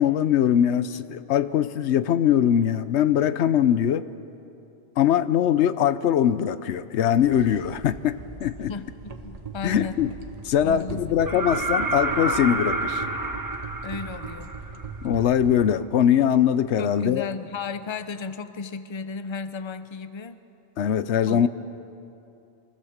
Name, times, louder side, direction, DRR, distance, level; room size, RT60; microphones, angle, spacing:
voice 1, 0.0-4.1 5.0-8.7 9.6-10.1 10.4-13.0 15.0-17.3 20.8-21.5, left 9 dB, 90° left, 13 dB, 1.0 m, -22 dB
sound 1, 7.2-15.6, right 5 dB, 35° right, 1.1 m, -40 dB
voice 2, 8.7-10.0 10.6-11.2 13.8-14.5 16.8-20.4 21.3-21.5, left 5 dB, 30° left, 11 dB, 0.7 m, -34 dB
sound 2, 11.3-15.0 16.9-17.0, right 2 dB, 20° right, 1.0 m, -28 dB
24.0 x 16.5 x 7.3 m, 2.7 s
omnidirectional pair, 1.1 m